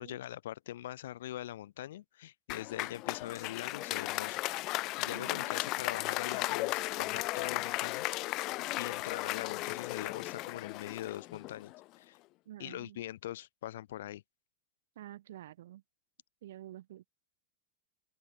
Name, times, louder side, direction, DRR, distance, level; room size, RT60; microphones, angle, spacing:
voice 1, 0.0-8.1 8.8-12.2 12.6-14.2, left 13 dB, 85° left, 2.2 m, -42 dB
Applause, 2.5-11.8, left 20 dB, 30° left, 0.4 m, -36 dB
voice 2, 5.0-5.6 12.5-13.0 15.0-15.8 16.4-17.1, right 13 dB, 85° right, 2.1 m, -49 dB
open air
supercardioid pair, 180°, 0 cm